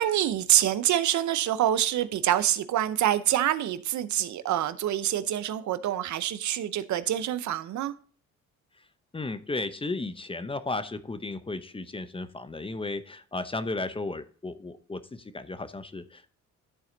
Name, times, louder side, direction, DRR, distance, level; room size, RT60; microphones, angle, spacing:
voice 1, 0.0-7.9, right 12 dB, 70° right, 13 dB, 0.7 m, -26 dB
voice 2, 9.1-16.3, left 3 dB, 20° left, 12 dB, 0.8 m, -34 dB
12.5 x 4.3 x 3.8 m, 0.42 s
cardioid pair, 90°, 30 cm